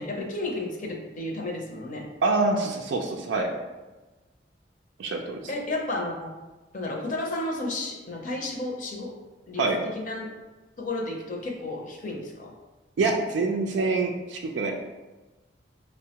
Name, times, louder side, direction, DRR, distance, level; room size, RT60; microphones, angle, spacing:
voice 1, 0.0-2.1 5.5-6.3 6.7-9.1 9.5-9.6 9.9-10.3 10.8-12.5, left 2 dB, 45° left, 0 dB, 0.6 m, -32 dB
voice 2, 2.2-3.5 5.0-5.4 9.6-9.8 13.0-14.7, right 3 dB, 90° right, 1 dB, 0.4 m, -25 dB
5.2 x 2.1 x 2.8 m, 1.2 s
head